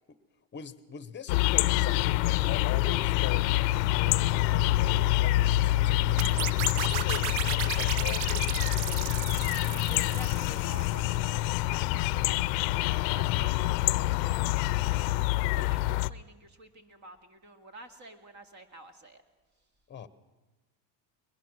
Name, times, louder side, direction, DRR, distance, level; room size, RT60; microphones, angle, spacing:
voice 1, 0.5-8.8 19.9-20.1, left 8 dB, 20° left, 15 dB, 1.0 m, -42 dB
sound 1, 1.3-16.1, left 17 dB, 90° left, 0.7 m, -26 dB
sound 2, 6.2-11.0, right 15 dB, 80° right, 0.7 m, -35 dB
voice 2, 9.5-19.2, right 2 dB, 35° right, 7 dB, 2.3 m, -50 dB
21.5 x 21.0 x 6.2 m, 1.2 s
cardioid pair, 125°, 49 cm